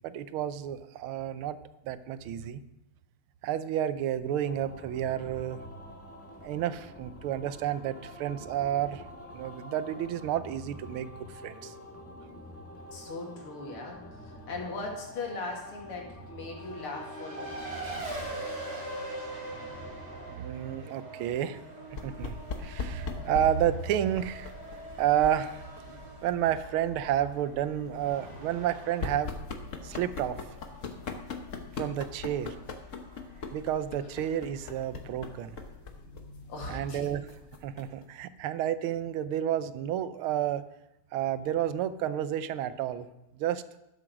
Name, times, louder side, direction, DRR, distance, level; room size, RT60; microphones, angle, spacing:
voice 1, 0.0-1.6 1.8-2.6 3.4-5.6 6.4-9.1 9.3-11.7 20.3-21.6 22.0-24.5 25.0-25.6 26.2-29.3 29.8-30.4 31.8-32.6 33.5-35.6 36.7-37.3 37.6-40.6 41.1-43.1 43.4-43.6, right 10 dB, 80° right, 13 dB, 1.5 m, -30 dB
sound 1, 4.4-20.3, left 1 dB, 5° left, 1.6 m, -47 dB
voice 2, 12.9-14.0 14.5-17.9 29.9-30.0 36.5-37.0, left 3 dB, 80° left, 0 dB, 3.1 m, -39 dB
Race car auto racing, 16.6-35.7, right 2 dB, 30° right, 3.2 m, -44 dB
sound 2, 21.9-38.0, left 4 dB, 50° left, 1.1 m, -41 dB
12.5 x 7.6 x 6.1 m, 0.91 s
omnidirectional pair, 2.4 m